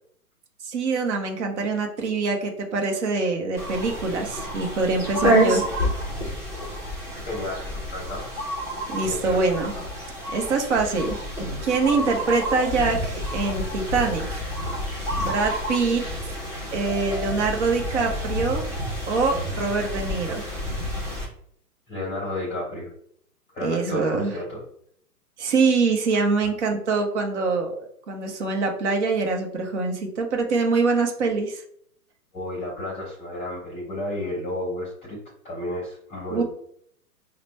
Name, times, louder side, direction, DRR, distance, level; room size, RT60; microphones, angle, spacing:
voice 1, 0.6-5.6 8.9-9.7 10.3-11.2 11.6-14.4 15.2-16.3 16.7-18.7 19.1-20.5 23.6-24.3 25.4-31.6 36.3-36.4, right 4 dB, 45° right, 2 dB, 1.1 m, -24 dB
sound 1, 3.6-21.2, equal, 5° right, 0.8 m, -29 dB
voice 2, 7.3-8.3 9.0-9.8 21.9-22.9 23.5-24.6 26.4-26.5 32.3-35.2 35.4-36.4, left 1 dB, 15° left, -5 dB, 1.2 m, -32 dB
5.0 x 2.4 x 3.2 m, 0.65 s
hypercardioid pair, 140°, 47 cm